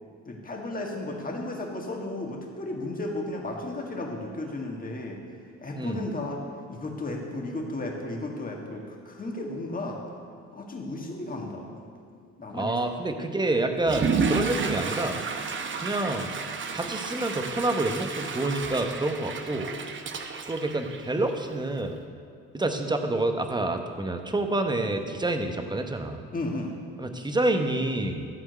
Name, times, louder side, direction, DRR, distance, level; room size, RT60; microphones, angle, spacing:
voice 1, 0.2-5.2 5.6-6.4 6.7-10.0 10.5-11.7 12.4-12.8 26.3-26.7, left 2 dB, 30° left, 0 dB, 1.9 m, -34 dB
voice 2, 12.5-15.2 15.8-16.3 16.7-19.7 20.5-22.0 22.5-26.3 27.0-28.3, right 2 dB, 15° right, 6 dB, 1.0 m, -28 dB
Water / Toilet flush, 13.8-21.5, right 5 dB, 40° right, 0.9 m, -31 dB
13.5 x 4.5 x 7.9 m, 2.4 s
cardioid pair, 90°, 30 cm